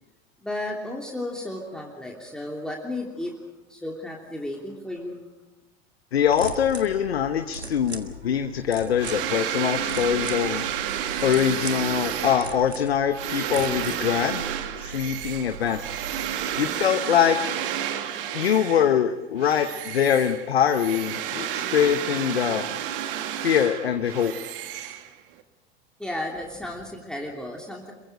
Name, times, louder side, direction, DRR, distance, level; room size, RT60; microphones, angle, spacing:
voice 1, 0.4-3.4 3.7-5.2 26.0-27.9, left 1 dB, ahead, -1 dB, 3.1 m, -33 dB
voice 2, 6.1-10.6 11.2-14.4 14.8-16.1 16.6-17.5 18.3-22.7 23.4-24.3, left 8 dB, 70° left, 9 dB, 1.1 m, -23 dB
sound 1, 6.2-16.6, right 2 dB, 90° right, 1.8 m, -40 dB
sound 2, 9.0-19.0 19.4-25.4, right 10 dB, 55° right, 1.9 m, -31 dB
28.5 x 23.0 x 5.2 m, 1.1 s
figure-of-eight pair, 75°, 31 cm